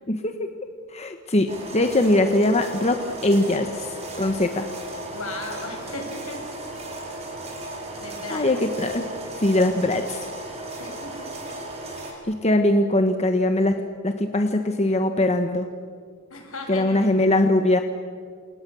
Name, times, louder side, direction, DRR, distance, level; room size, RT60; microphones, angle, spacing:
voice 1, 0.1-0.5 0.9-4.7 8.3-9.1 9.4-10.2 12.2-13.8 14.0-15.7 16.7-17.8, left 1 dB, 30° left, 6 dB, 1.3 m, -21 dB
sound 1, 1.5-12.1, right 2 dB, 30° right, 5.4 m, -36 dB
voice 2, 5.1-6.4 8.0-8.5 10.8-11.3 12.1-12.3 16.3-17.0, left 2 dB, 75° left, 2 dB, 7.2 m, -36 dB
28.5 x 28.0 x 7.1 m, 2.1 s
head